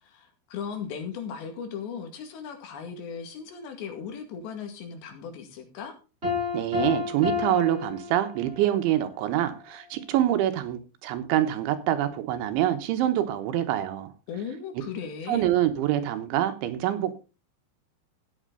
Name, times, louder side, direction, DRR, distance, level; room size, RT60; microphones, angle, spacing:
voice 1, 0.0-6.0 14.3-15.5, left 7 dB, 70° left, 5 dB, 4.2 m, -37 dB
Piano, 6.2-8.8, left 5 dB, 15° right, 6.9 m, -30 dB
voice 2, 6.5-14.1 15.3-17.1, right 12 dB, 85° right, 8 dB, 3.5 m, -25 dB
14.0 x 9.3 x 4.0 m, 0.31 s
omnidirectional pair, 5.4 m